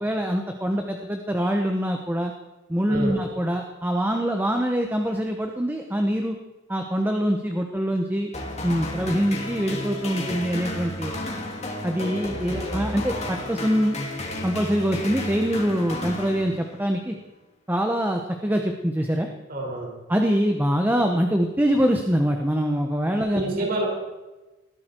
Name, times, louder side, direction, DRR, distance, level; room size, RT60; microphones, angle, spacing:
voice 1, 0.0-2.3 2.7-6.4 6.7-8.3 8.6-11.1 11.8-14.0 14.4-17.2 17.7-19.3 20.1-23.4, equal, 10° right, 3 dB, 1.0 m, -24 dB
sound 1, 8.3-16.9, left 1 dB, 35° left, 2.8 m, -32 dB
voice 2, 19.5-19.9 23.3-23.9, right 1 dB, 45° right, -1 dB, 5.4 m, -27 dB
20.0 x 15.0 x 4.5 m, 1.1 s
head